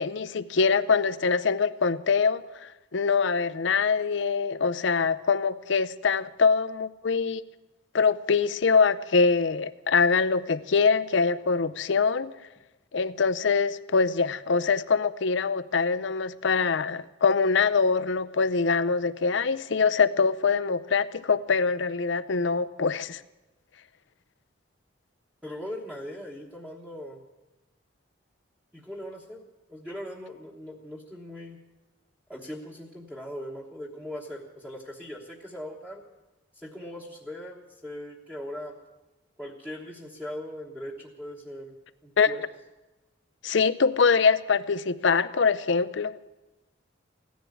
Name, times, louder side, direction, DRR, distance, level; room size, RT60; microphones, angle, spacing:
voice 1, 0.0-7.4 7.9-12.3 12.9-23.2 42.2-42.3 43.4-46.1, left 5 dB, 70° left, 15 dB, 0.6 m, -24 dB
voice 2, 25.4-27.2 28.7-31.6 32.3-36.0 36.5-38.8 39.4-41.8 42.0-42.4, equal, 5° right, -2 dB, 1.2 m, -40 dB
16.0 x 10.5 x 8.5 m, 1.1 s
head